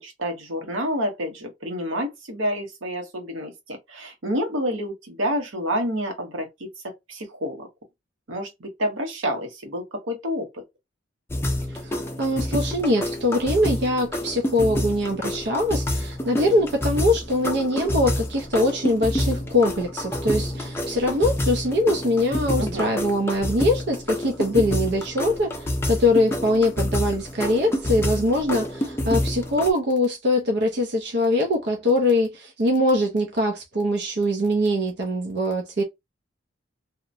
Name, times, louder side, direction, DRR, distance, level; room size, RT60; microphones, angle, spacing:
voice 1, 0.0-6.5 6.8-7.7 8.3-10.5 22.6-22.9, equal, 90° right, 0.9 m, -28 dB
sound 1, 11.3-29.7, left 1 dB, 15° left, 0.4 m, -28 dB
voice 2, 11.7-25.5 25.9-35.8, left 1 dB, 60° right, 0.5 m, -22 dB
2.8 x 2.1 x 2.5 m
head